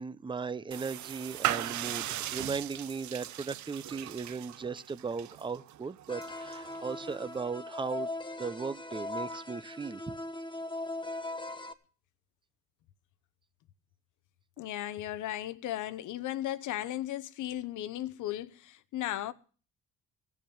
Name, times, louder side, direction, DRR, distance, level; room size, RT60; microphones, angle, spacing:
voice 1, 0.0-8.1 8.4-10.2, right 5 dB, 15° right, 0.6 m, -37 dB
sound 1, 0.7-7.4, right 13 dB, 70° right, 0.7 m, -38 dB
sound 2, 6.1-11.7, left 2 dB, 15° left, 1.4 m, -39 dB
voice 2, 14.6-19.3, left 13 dB, 80° left, 1.0 m, -36 dB
16.5 x 7.3 x 7.9 m
cardioid pair, 90°, 30 cm